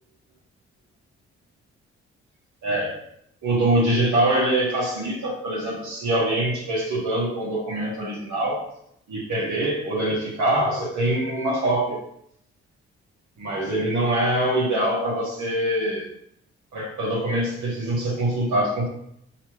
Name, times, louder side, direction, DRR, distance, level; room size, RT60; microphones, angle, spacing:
voice 1, 2.6-3.0 3.4-8.7 9.1-12.0 13.4-16.1 16.7-18.9, right 1 dB, 70° right, -4 dB, 1.3 m, -24 dB
4.5 x 3.1 x 3.0 m, 0.73 s
supercardioid pair, 50°, 30 cm